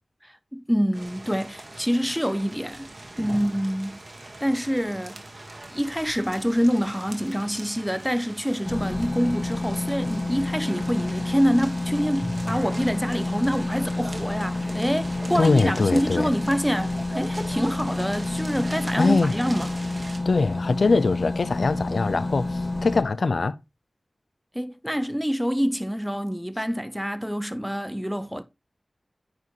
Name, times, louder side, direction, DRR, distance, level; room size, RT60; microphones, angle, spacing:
voice 1, 0.2-2.9 3.2-4.0 4.4-5.2 5.7-19.7 24.5-28.4, equal, ahead, 0.6 m, -26 dB
sound 1, 0.9-20.2, right 2 dB, 50° right, 1.6 m, -40 dB
sound 2, 8.7-23.0, left 2 dB, 25° left, 0.9 m, -29 dB
voice 2, 15.3-16.3 19.0-19.3 20.3-23.6, left 3 dB, 85° left, 0.4 m, -22 dB
9.5 x 4.9 x 3.1 m
wide cardioid pair, 45°, 0 cm